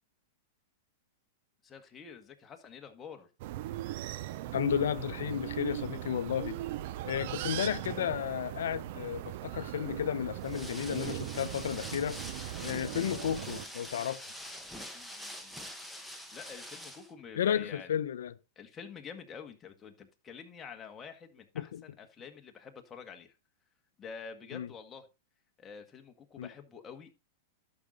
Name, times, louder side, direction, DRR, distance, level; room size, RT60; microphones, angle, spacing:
voice 1, 1.6-3.3 14.9-15.7 16.3-17.9 18.6-23.3 24.0-25.1 25.6-27.1, left 6 dB, 20° left, 1.7 m, -48 dB
sound 1, 3.4-13.7, right 14 dB, 55° right, 0.6 m, -39 dB
voice 2, 4.5-6.6 7.0-14.2 17.4-18.3 21.6-21.8 24.5-24.7 26.4-26.5, left 9 dB, 85° left, 0.7 m, -33 dB
sound 2, 10.4-17.1, equal, ahead, 1.5 m, -45 dB
11.5 x 6.5 x 3.9 m
hypercardioid pair, 135°, 0 cm